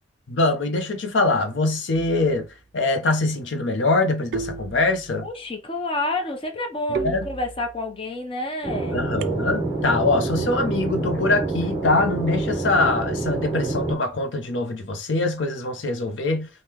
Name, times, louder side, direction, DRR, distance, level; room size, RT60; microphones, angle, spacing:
voice 1, 0.3-2.5 2.7-5.3 7.0-7.2 8.9-16.5, left 2 dB, 65° left, 0.6 m, -23 dB
sound 1, 1.9-2.5 4.3-5.3 6.9-7.9 9.2-9.9, right 5 dB, 65° right, 0.3 m, -33 dB
voice 2, 5.2-9.0, left 2 dB, 30° left, 0.6 m, -29 dB
sound 2, 8.6-14.0, right 2 dB, 20° right, 0.6 m, -27 dB
3.5 x 2.1 x 2.9 m
head